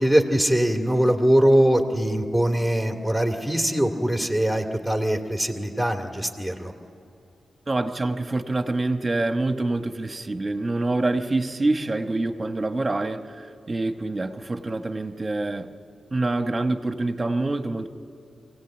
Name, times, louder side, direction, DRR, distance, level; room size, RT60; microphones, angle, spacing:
voice 1, 0.0-6.7, right 1 dB, 5° left, 2 dB, 2.2 m, -22 dB
voice 2, 7.7-15.7 16.1-17.9, right 2 dB, 25° right, 8 dB, 1.2 m, -26 dB
25.0 x 17.5 x 8.9 m, 2.8 s
cardioid pair, 95°, 0 cm